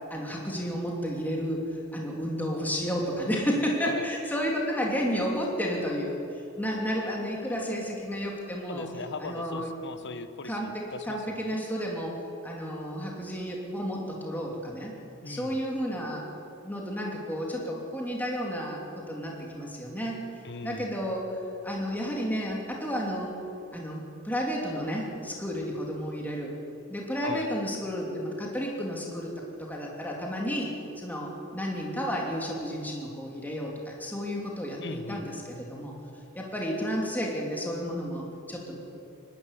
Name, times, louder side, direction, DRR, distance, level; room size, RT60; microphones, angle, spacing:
voice 1, 0.1-1.6 1.9-6.2 6.6-8.9 9.2-9.7 10.4-12.1 12.4-14.9 15.2-16.3 16.6-20.2 20.6-21.4 21.6-23.3 23.7-26.5 26.9-35.9 36.3-38.8, equal, 10° left, -2 dB, 3.0 m, -32 dB
voice 2, 8.7-10.5 10.9-11.6 15.2-15.6 20.4-20.9 27.2-27.5 34.8-35.2, left 3 dB, 55° left, 10 dB, 1.2 m, -39 dB
23.5 x 12.5 x 10.0 m, 2.7 s
head